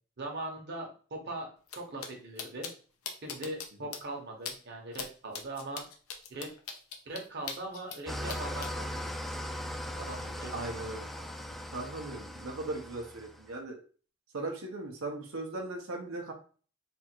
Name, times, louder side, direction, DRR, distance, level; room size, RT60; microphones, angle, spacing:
voice 1, 0.2-2.7 3.2-5.9 6.3-6.5 7.0-9.6 10.0-10.5 10.8-11.6, right 2 dB, 55° right, 1 dB, 1.0 m, -41 dB
sound 1, 1.7-1.8 2.0-2.1 2.4-2.7 3.1-3.7 3.9-4.0 4.5-4.6 4.9-5.1 5.3-8.0 8.3-8.7, left 6 dB, 90° left, 0.8 m, -39 dB
Engine starting / Idling, 8.1-13.5, equal, ahead, 0.4 m, -39 dB
voice 2, 10.5-11.1 11.7-13.8 14.3-16.3, right 2 dB, 80° right, 1 dB, 0.8 m, -38 dB
3.4 x 2.5 x 4.4 m, 0.40 s
head